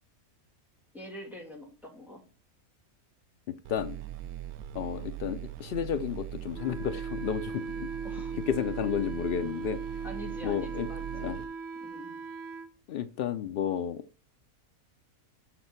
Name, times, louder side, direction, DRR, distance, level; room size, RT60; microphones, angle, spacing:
voice 1, 0.9-2.2 8.0-8.4 10.0-11.5 11.8-12.2, left 1 dB, ahead, -3 dB, 2.2 m, -45 dB
voice 2, 3.5-4.0 4.7-7.9 8.5-9.8 10.4-10.9 11.1-11.4 12.9-14.0, left 9 dB, 90° left, 11 dB, 0.5 m, -32 dB
sound 1, 3.6-11.4, right 13 dB, 80° right, 1.1 m, -40 dB
Wind instrument woodwind instrument, 6.5-12.7, right 4 dB, 55° right, 1.0 m, -39 dB
6.5 x 6.1 x 4.4 m, 0.35 s
omnidirectional pair, 1.5 m